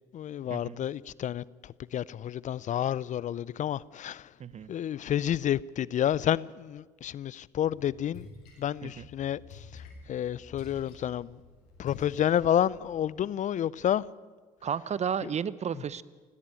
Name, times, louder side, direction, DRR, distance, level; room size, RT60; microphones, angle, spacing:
voice 1, 0.1-4.3 4.7-8.3 8.6-11.4 11.8-14.1 15.2-15.3 15.7-15.8, left 10 dB, 50° left, 0.5 m, -30 dB
voice 2, 4.4-4.7 8.8-9.1 14.6-16.0, right 7 dB, 45° right, 0.9 m, -33 dB
Splash splatter, 7.7-13.0, left 4 dB, 80° left, 6.3 m, -50 dB
18.0 x 17.0 x 9.0 m
hypercardioid pair, 60°, 16 cm